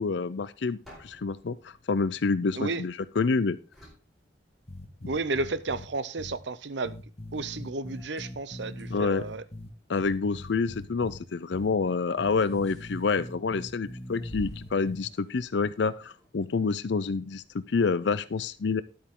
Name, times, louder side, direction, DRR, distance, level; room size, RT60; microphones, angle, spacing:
voice 1, 0.0-3.6 8.9-9.2 9.9-18.8, left 4 dB, 70° left, 0.5 m, -28 dB
sound 1, 0.8-3.1 3.7-5.1, equal, ahead, 4.6 m, -55 dB
sound 2, 4.7-5.9 6.2-6.4 6.8-9.7 10.0-11.2 11.5-11.7 12.2-15.0, left 1 dB, 35° left, 1.6 m, -41 dB
voice 2, 5.1-7.0 7.3-9.4, right 3 dB, 75° right, 0.7 m, -32 dB
sound 3, 8.0-16.3, right 1 dB, 20° right, 3.3 m, -51 dB
12.0 x 8.5 x 3.7 m
head